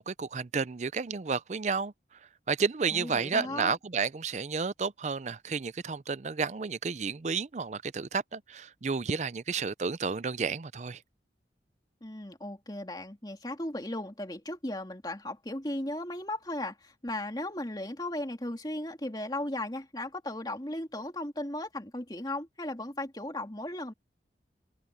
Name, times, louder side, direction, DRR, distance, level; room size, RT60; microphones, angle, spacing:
voice 1, 0.0-1.9 2.5-11.0, right 5 dB, 40° right, 0.5 m, -31 dB
voice 2, 2.9-3.8 12.0-23.9, left 1 dB, 20° left, 2.6 m, -36 dB
head